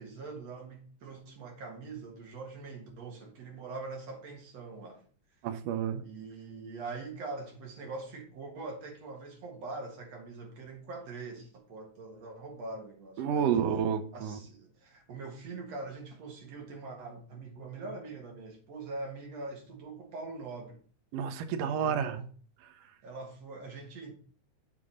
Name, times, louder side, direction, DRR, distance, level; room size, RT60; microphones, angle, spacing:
voice 1, 0.0-5.0 6.0-13.5 14.1-20.8 21.6-22.2 23.0-24.1, right 3 dB, 60° right, 2.6 m, -43 dB
voice 2, 5.4-6.0 13.2-14.4 21.1-22.2, right 8 dB, 90° right, 1.4 m, -30 dB
7.4 x 3.9 x 5.0 m
omnidirectional pair, 3.5 m